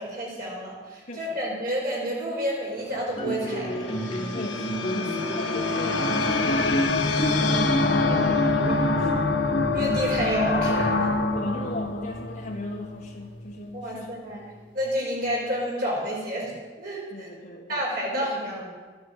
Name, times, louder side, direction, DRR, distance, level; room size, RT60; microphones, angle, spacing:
voice 1, 0.0-4.0 7.8-7.9 9.7-11.1 13.7-16.5 16.8-17.3 17.7-18.7, equal, 55° right, -4 dB, 5.1 m, -30 dB
voice 2, 1.1-1.7 4.3-9.2 11.3-14.4 17.1-17.8 18.1-18.3, left 1 dB, 50° left, -3 dB, 1.5 m, -37 dB
sound 1, 2.9-13.2, left 3 dB, 75° left, 1.6 m, -26 dB
sound 2, 3.2-10.2, equal, 30° left, 1.7 m, -30 dB
13.5 x 10.0 x 7.8 m, 1.4 s
head